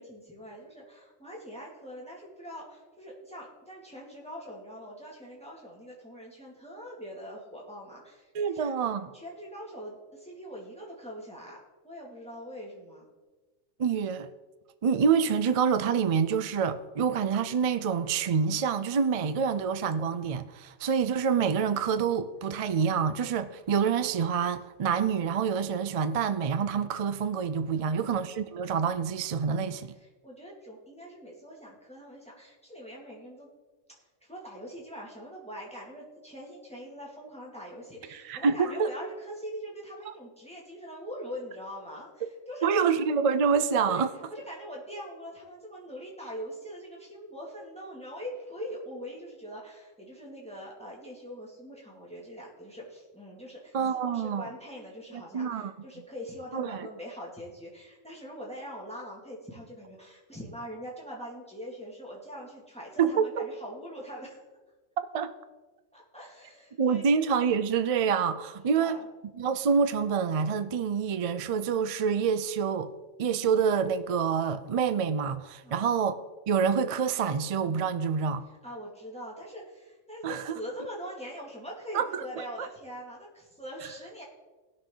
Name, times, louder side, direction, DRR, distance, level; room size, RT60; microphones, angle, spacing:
voice 1, 0.0-8.7 9.1-11.6 11.8-13.1 27.7-27.9 30.0-33.5 34.2-42.7 43.9-44.0 44.3-64.4 65.9-67.1 68.6-69.0 75.6-75.9 78.5-84.2, equal, 5° left, 2.2 m, -43 dB
voice 2, 8.3-9.1 13.8-14.3 14.8-29.9 38.1-38.9 42.6-44.1 53.7-54.5 55.3-55.7 56.5-56.8 63.0-63.3 65.1-65.3 66.8-69.0 69.4-72.9 73.2-76.1 76.5-78.4 80.2-80.6 81.9-82.1, right 6 dB, 65° right, 0.3 m, -27 dB
18.5 x 6.5 x 3.9 m
omnidirectional pair, 1.3 m